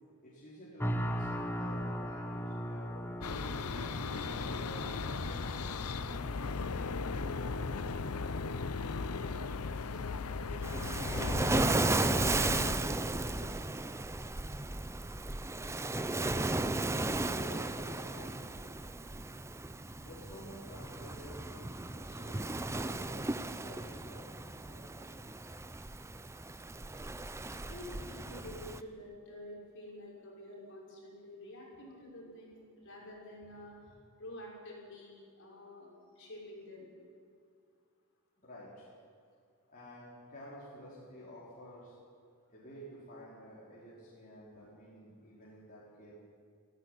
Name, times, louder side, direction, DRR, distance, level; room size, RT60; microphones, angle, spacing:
voice 1, 0.2-3.4 4.2-7.3 16.2-18.7 20.0-24.9 38.4-38.9 39.7-42.0 42.5-46.1, equal, 40° left, -7 dB, 4.5 m, -52 dB
sound 1, 0.8-7.7, equal, 10° left, 1.3 m, -39 dB
sound 2, 3.2-12.7, left 4 dB, 85° left, 0.8 m, -37 dB
voice 2, 8.8-9.4 9.6-13.5 27.5-33.8 34.2-36.9, left 1 dB, 55° left, -3 dB, 6.3 m, -49 dB
Waves surf, 10.6-28.8, right 2 dB, 10° right, 0.5 m, -35 dB
17.0 x 16.0 x 10.0 m, 2.3 s
head